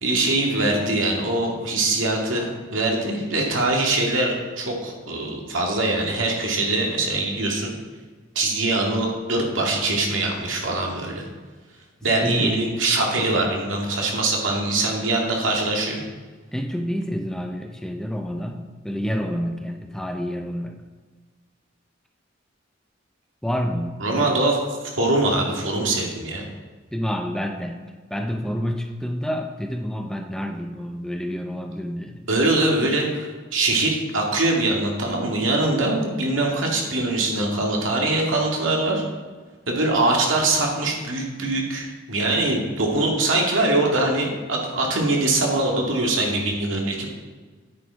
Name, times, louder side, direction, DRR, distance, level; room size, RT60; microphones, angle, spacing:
voice 1, 0.0-7.7 8.4-11.3 12.0-16.0 24.0-24.6 24.8-26.4 32.3-39.0 39.7-47.1, right 2 dB, 85° right, 0 dB, 2.2 m, -23 dB
voice 2, 12.2-12.6 16.5-20.8 23.4-24.4 26.9-27.8 28.1-32.3, equal, 5° left, 4 dB, 0.7 m, -28 dB
9.6 x 8.6 x 4.7 m, 1.4 s
head